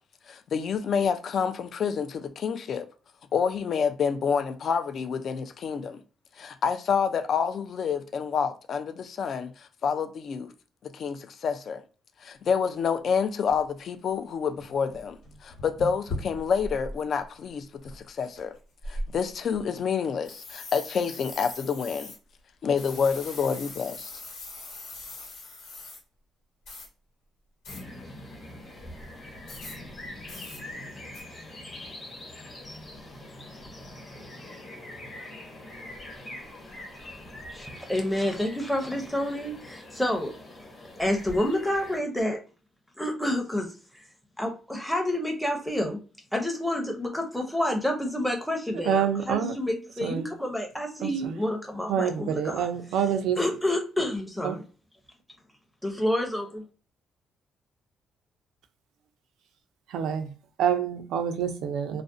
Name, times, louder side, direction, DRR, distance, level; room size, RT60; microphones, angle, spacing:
voice 1, 0.3-2.9 3.3-6.0 6.4-10.5 10.8-11.8 12.2-18.5 18.9-22.1 22.6-24.1, left 6 dB, 55° left, 0.3 m, -28 dB
sound 1, 12.7-12.8 13.5-13.6 14.2-14.3 14.5-17.0 17.3-17.5 17.8-18.4 18.8-19.6 20.2-22.2 22.8-26.0 26.6-26.9 27.6-27.8 29.5-29.8 30.3-30.6 31.1-31.2, left 1 dB, 85° left, 1.0 m, -40 dB
sound 2, 27.7-42.0, left 1 dB, 35° left, 1.0 m, -43 dB
voice 2, 37.5-40.3 41.0-42.4 43.0-43.7 43.9-44.0 44.4-46.0 46.3-52.7 53.4-54.6 55.8-56.6, left 1 dB, ahead, 0.6 m, -29 dB
voice 3, 48.8-49.6 50.0-50.3 51.0-51.4 51.9-53.4 54.4-54.6 59.9-60.3 60.6-62.0, right 8 dB, 85° right, 0.4 m, -27 dB
2.4 x 2.0 x 2.5 m
cardioid pair, 90°, 0 cm